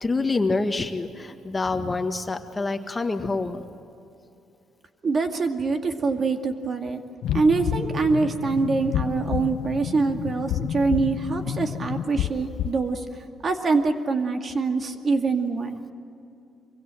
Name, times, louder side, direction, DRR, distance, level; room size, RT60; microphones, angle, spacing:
voice 1, 0.0-3.7, left 3 dB, 25° left, 6 dB, 1.7 m, -26 dB
voice 2, 5.0-7.0 7.3-13.1 13.4-15.8, right 4 dB, 45° right, 5 dB, 2.2 m, -24 dB
sound 1, 7.2-12.9, left 10 dB, 80° left, 0.7 m, -29 dB
25.5 x 23.5 x 7.7 m, 2.7 s
cardioid pair, 90°, 0 cm